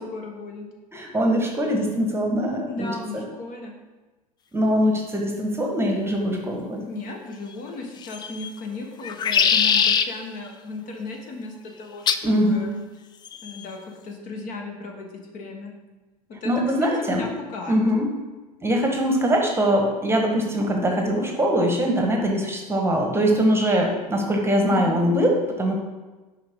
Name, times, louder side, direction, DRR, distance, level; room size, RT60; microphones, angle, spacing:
voice 1, 0.1-0.7 2.7-3.7 6.9-12.7 13.4-13.8 14.0-15.1 15.3-15.7 16.3-16.5 16.8-17.8 24.7-25.0, left 3 dB, 45° left, 2 dB, 1.2 m, -35 dB
voice 2, 0.9-3.2 4.5-6.9 12.2-12.7 16.4-17.3 17.7-18.1 18.6-25.7, equal, 15° right, 2 dB, 1.1 m, -22 dB
sound 1, 8.0-8.5 9.0-10.1 12.1-12.3 13.3-13.7, left 7 dB, 20° left, 0.3 m, -21 dB
6.3 x 5.1 x 3.6 m, 1.2 s
hypercardioid pair, 85°, 20 cm